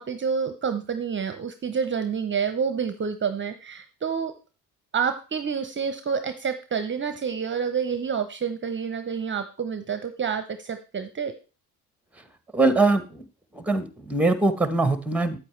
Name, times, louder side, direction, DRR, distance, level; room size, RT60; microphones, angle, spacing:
voice 1, 0.0-4.3 4.9-11.3, right 6 dB, 30° right, 9 dB, 0.8 m, -28 dB
voice 2, 12.5-13.2 13.5-15.4, right 3 dB, 5° right, 11 dB, 1.1 m, -22 dB
8.5 x 8.5 x 3.2 m, 0.33 s
supercardioid pair, 80°, 38 cm